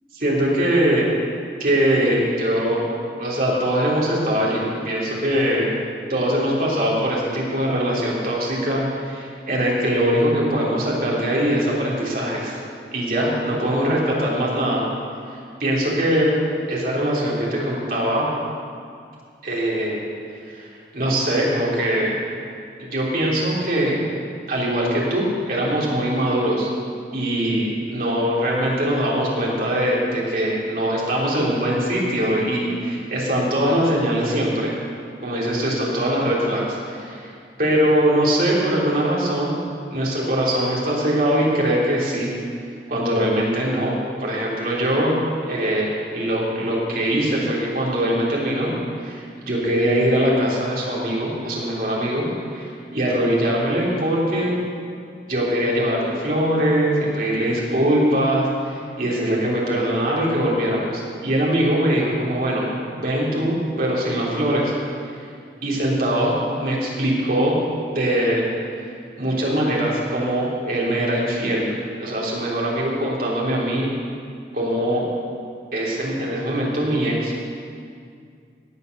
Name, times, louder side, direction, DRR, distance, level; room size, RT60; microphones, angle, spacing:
voice 1, 0.1-1.0 1.6-2.8 3.2-5.8 6.1-12.6 12.9-14.8 15.6-16.3 16.7-18.3 19.4-20.0 20.5-22.1 22.8-24.0 24.5-26.7 27.1-34.8 35.2-37.3 37.6-39.6 39.9-42.3 42.9-45.2 45.5-48.7 49.0-54.5 55.3-62.7 62.9-64.7 65.2-65.3 65.6-67.6 67.9-68.5 69.2-71.7 72.0-73.9 74.5-75.0 75.7-77.5, right 1 dB, 50° right, -5 dB, 3.5 m, -22 dB
17.5 x 8.1 x 6.8 m, 2.3 s
head